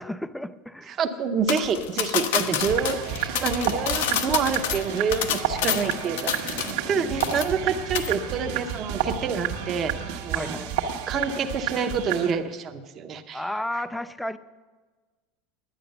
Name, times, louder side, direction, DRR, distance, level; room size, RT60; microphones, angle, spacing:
voice 1, 0.0-1.0 2.5-2.7 7.0-7.1 10.3-10.8 13.3-14.4, left 1 dB, ahead, 13 dB, 0.3 m, -33 dB
voice 2, 0.9-10.7 11.1-13.4, right 5 dB, 25° right, 6 dB, 0.7 m, -27 dB
sound 1, 1.5-6.9 7.2-7.7 8.0-8.1, left 8 dB, 80° left, 1.1 m, -28 dB
sound 2, 2.6-12.3, right 9 dB, 65° right, 1.3 m, -31 dB
10.5 x 9.9 x 6.6 m, 1.3 s
supercardioid pair, 175°, 0 cm